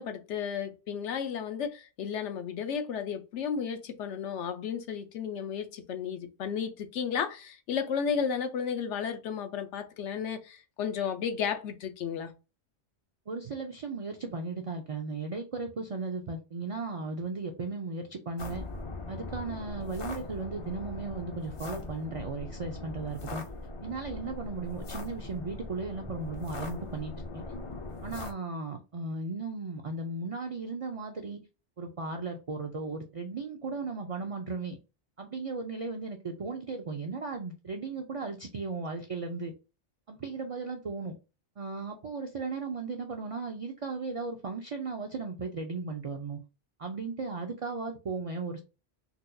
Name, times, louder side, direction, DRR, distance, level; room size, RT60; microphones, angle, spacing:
voice 1, 0.0-12.3, left 7 dB, 80° left, 0.9 m, -33 dB
voice 2, 13.3-18.6 19.1-23.4 23.8-27.4 28.0-31.4 31.8-34.8 35.2-39.5 40.1-41.2 41.6-46.4 46.8-48.6, right 3 dB, 50° right, 0.4 m, -36 dB
sound 1, 18.4-28.3, left 3 dB, 45° left, 0.4 m, -40 dB
4.2 x 2.2 x 2.6 m
omnidirectional pair, 1.2 m